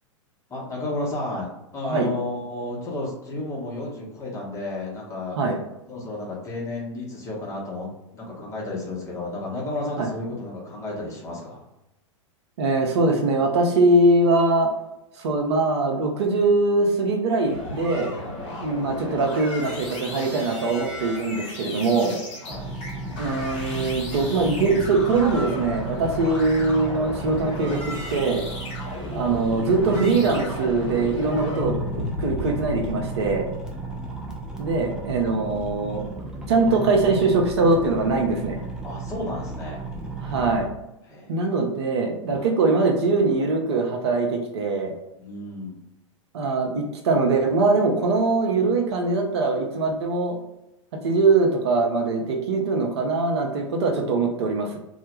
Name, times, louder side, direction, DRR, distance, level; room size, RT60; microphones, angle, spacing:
voice 1, 0.5-5.4 5.9-7.9 8.1-11.6 18.5-18.8 22.4-22.7 33.8-34.0 38.8-39.8 41.0-41.4 42.3-42.5 45.2-45.8, left 2 dB, 20° left, -4 dB, 0.8 m, -32 dB
voice 2, 12.6-14.7 15.2-18.1 18.6-22.1 23.2-27.8 28.1-28.4 29.1-33.5 34.6-36.0 36.5-38.6 40.2-40.7 41.3-44.9 46.3-50.4 51.0-54.8, right 3 dB, 55° right, 1 dB, 0.5 m, -22 dB
sound 1, 17.4-31.6, left 1 dB, 50° left, 1.1 m, -36 dB
sound 2, 22.5-40.7, right 2 dB, 5° right, 0.4 m, -35 dB
sound 3, 31.4-35.7 36.2-36.3, left 2 dB, 70° left, 0.5 m, -34 dB
2.1 x 2.1 x 2.9 m, 0.89 s
figure-of-eight pair, 95°, 16 cm